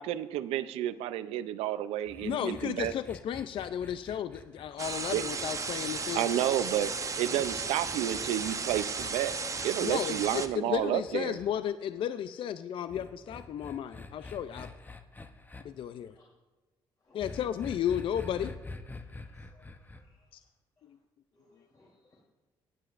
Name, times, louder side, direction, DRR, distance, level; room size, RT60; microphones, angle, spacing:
voice 1, 0.0-2.9 5.1-5.2 6.1-9.4 9.6-11.4, right 12 dB, 85° right, 14 dB, 0.4 m, -31 dB
sound 1, 2.1-6.5 7.4-11.5 12.9-15.6 17.2-20.0, left 3 dB, 20° left, 0.8 m, -46 dB
voice 2, 2.2-6.5 9.8-14.7 15.6-16.1 17.1-18.5 20.3-20.4 20.9-21.0, left 9 dB, 60° left, 12 dB, 0.4 m, -34 dB
sound 2, 4.8-10.5, right 4 dB, 30° right, 0.8 m, -35 dB
voice 3, 18.9-19.7 20.0-20.2 21.3-22.2, left 3 dB, 40° left, -5 dB, 3.0 m, -65 dB
20.5 x 7.8 x 2.5 m, 1.2 s
cardioid pair, 75°, 10 cm